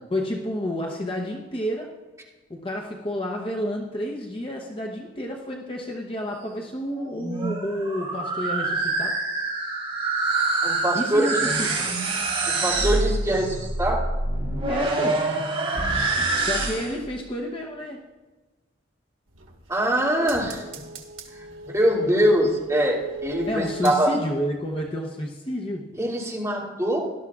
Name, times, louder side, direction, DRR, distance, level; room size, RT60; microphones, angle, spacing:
voice 1, 0.0-1.9 2.5-9.2 10.9-11.9 14.7-15.3 16.1-18.1 23.5-25.9, equal, 25° left, 0 dB, 0.8 m, -30 dB
sound 1, 7.0-17.0, right 3 dB, 30° right, 3.5 m, -26 dB
voice 2, 10.6-11.5 12.5-14.0 19.7-20.6 21.3-24.1 26.0-27.0, right 1 dB, 15° right, -5 dB, 2.3 m, -23 dB
sound 2, 19.3-24.4 24.8-24.9, right 5 dB, 90° right, 1.5 m, -38 dB
17.5 x 12.0 x 2.4 m, 1.3 s
head